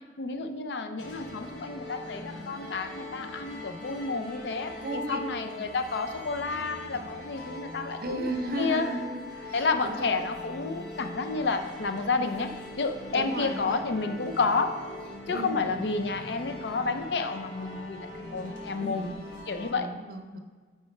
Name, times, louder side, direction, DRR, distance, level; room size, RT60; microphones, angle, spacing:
voice 1, 0.0-8.3 8.6-8.9 9.5-12.5 12.8-14.8 15.3-19.1 19.5-19.9, left 4 dB, 70° left, 8 dB, 0.5 m, -30 dB
sound 1, 1.0-19.7, left 2 dB, 90° left, 1.1 m, -42 dB
voice 2, 4.8-5.2 8.0-10.1 13.1-13.8 15.3-15.8 18.8-19.2 19.7-20.4, right 1 dB, 55° right, 5 dB, 0.7 m, -35 dB
9.1 x 4.5 x 3.2 m, 1.4 s
head